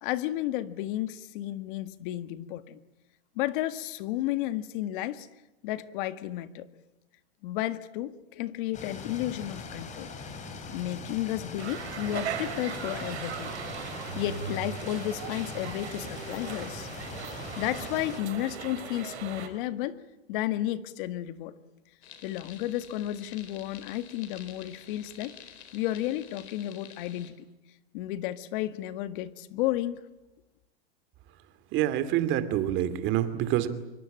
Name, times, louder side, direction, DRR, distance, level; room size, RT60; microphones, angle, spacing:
voice 1, 0.0-2.8 3.3-5.3 5.6-6.7 7.4-10.1 10.7-13.5 14.1-16.9 17.6-20.0 20.3-21.5 22.2-25.3 25.7-27.3 27.9-30.0, left 14 dB, 50° left, 12 dB, 1.8 m, -32 dB
sound 1, 8.7-18.2, left 4 dB, 20° left, 4.2 m, -41 dB
sound 2, 11.6-19.5, right 7 dB, 85° right, 5.6 m, -38 dB
sound 3, 22.0-27.3, left 8 dB, 80° left, 4.7 m, -50 dB
voice 2, 31.7-33.7, right 12 dB, 35° right, 12 dB, 2.5 m, -26 dB
26.0 x 24.0 x 8.9 m, 0.98 s
supercardioid pair, 140°, 33 cm